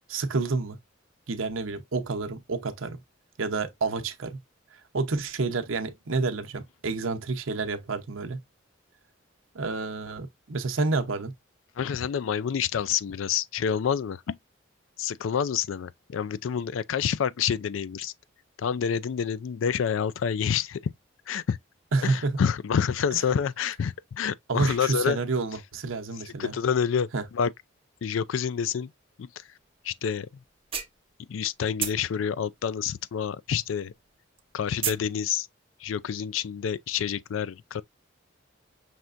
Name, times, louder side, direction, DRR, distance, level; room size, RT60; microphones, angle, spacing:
voice 1, 0.1-0.8 1.3-3.0 3.4-4.4 4.9-8.4 9.5-11.3 21.9-22.4 23.1-23.2 24.5-26.6 27.1-27.2, right 3 dB, 80° right, 0.8 m, -29 dB
voice 2, 11.8-14.4 15.0-18.1 18.6-20.8 21.3-21.6 22.0-25.2 26.4-27.1 27.3-27.5 28.0-28.9 29.2-29.3 29.8-30.3 31.3-33.9 34.5-35.5 35.8-37.8, left 7 dB, 75° left, 0.4 m, -28 dB
sound 1, 29.9-30.0 30.4-31.5 31.8-33.6 33.9-35.1, right 8 dB, 30° right, 0.8 m, -32 dB
5.8 x 3.3 x 2.4 m
head